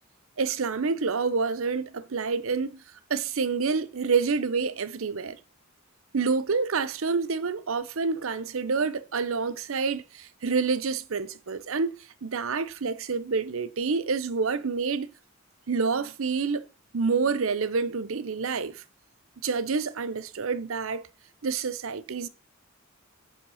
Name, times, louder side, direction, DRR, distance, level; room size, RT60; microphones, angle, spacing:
voice 1, 0.4-2.8 3.1-5.4 6.1-11.9 12.2-15.1 15.7-16.6 16.9-18.8 19.4-21.0 21.4-22.3, right 4 dB, 70° right, 0.6 m, -28 dB
9.8 x 3.4 x 6.3 m
head